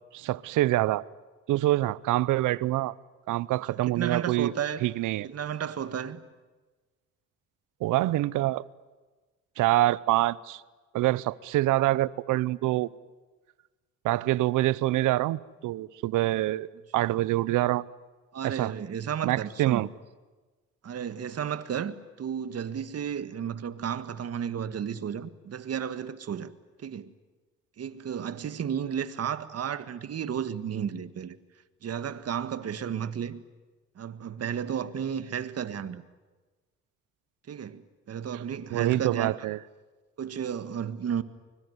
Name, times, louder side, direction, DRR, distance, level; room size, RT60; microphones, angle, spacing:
voice 1, 0.1-1.0 1.5-2.9 3.3-4.5 4.8-5.3 7.8-8.6 9.6-10.6 10.9-12.9 14.0-17.8 18.4-18.7 19.2-19.9 38.7-39.6, right 16 dB, 85° right, 0.8 m, -26 dB
voice 2, 3.7-4.9 5.2-6.2 18.3-19.8 20.8-26.5 26.8-27.1 27.8-31.4 31.8-33.4 34.0-36.0 37.5-37.8 38.1-39.4 40.2-41.2, right 8 dB, 55° right, 1.7 m, -33 dB
24.5 x 23.0 x 9.6 m
cardioid pair, 90°, 30 cm